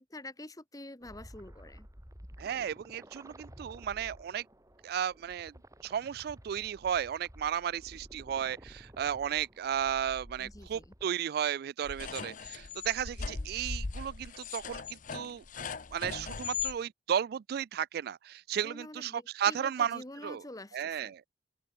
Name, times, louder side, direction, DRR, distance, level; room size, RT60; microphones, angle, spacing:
voice 1, 0.0-1.9 10.4-10.9 18.5-21.1, left 1 dB, 20° left, 1.9 m, -47 dB
sound 1, 1.0-11.0, equal, 20° right, 4.0 m, -53 dB
voice 2, 2.4-4.4 4.8-5.5 5.8-15.4 15.9-19.1 19.4-20.4 20.7-21.2, right 9 dB, 60° right, 0.3 m, -34 dB
sound 2, 11.8-16.7, left 5 dB, 50° left, 0.8 m, -39 dB
open air
head